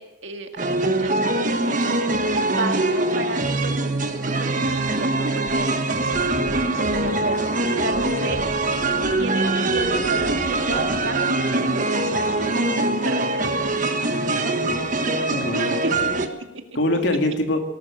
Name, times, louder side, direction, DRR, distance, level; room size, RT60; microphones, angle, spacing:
voice 1, 0.0-2.0 2.6-8.4 9.2-13.8 15.6-16.1, right 2 dB, 70° right, 5 dB, 1.9 m, -33 dB
sound 1, 0.6-16.3, right 2 dB, 40° right, 1.3 m, -23 dB
sound 2, 5.5-11.3, equal, 15° right, 1.2 m, -39 dB
voice 2, 6.9-7.3 14.2-14.8 15.3-15.8 16.7-17.6, left 1 dB, 65° left, 4 dB, 2.4 m, -25 dB
18.5 x 12.0 x 6.5 m, 0.96 s
head